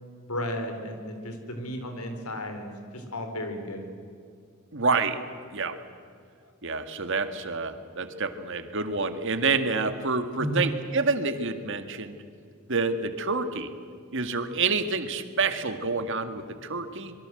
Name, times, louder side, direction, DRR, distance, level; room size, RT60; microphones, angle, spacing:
voice 1, 0.3-3.9 6.4-6.5 10.4-10.7, equal, 85° left, 6 dB, 4.6 m, -33 dB
voice 2, 4.7-5.2 5.5-5.8 6.6-12.2 12.7-13.7 14.1-17.1, right 4 dB, 60° right, 9 dB, 1.9 m, -28 dB
26.5 x 22.5 x 7.9 m, 2.2 s
head